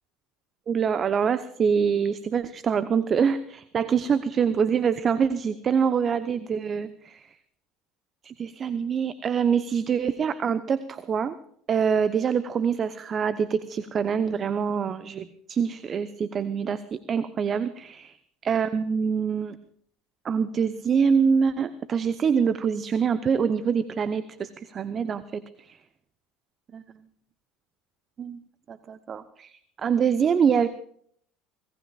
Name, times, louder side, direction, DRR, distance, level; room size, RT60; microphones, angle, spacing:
voice 1, 0.7-7.3 8.2-11.4 11.7-18.2 18.4-19.6 20.2-25.7 26.7-26.8 28.2-28.4 28.7-30.7, right 6 dB, 35° right, 13 dB, 0.8 m, -25 dB
26.0 x 18.5 x 2.4 m, 0.63 s
hypercardioid pair, 70°, 0 cm